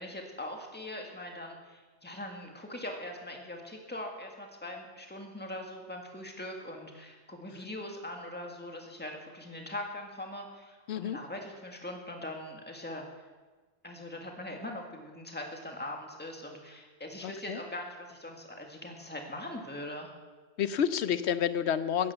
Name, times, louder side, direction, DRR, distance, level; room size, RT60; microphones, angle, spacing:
voice 1, 0.0-13.0 13.8-20.1, left 1 dB, 10° left, 2 dB, 1.9 m, -41 dB
voice 2, 17.2-17.6 20.6-22.1, left 8 dB, 75° left, 14 dB, 1.0 m, -29 dB
16.5 x 10.5 x 6.9 m, 1.3 s
omnidirectional pair, 1.1 m